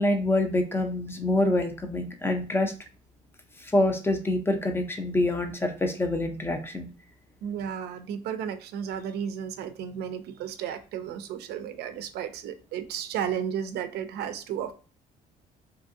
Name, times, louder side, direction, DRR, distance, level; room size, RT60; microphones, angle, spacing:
voice 1, 0.0-2.7 3.6-6.9, left 1 dB, 15° left, 5 dB, 0.6 m, -26 dB
voice 2, 7.4-14.7, right 8 dB, 75° right, 9 dB, 0.4 m, -33 dB
2.7 x 2.5 x 2.5 m, 0.36 s
cardioid pair, 110°, 17 cm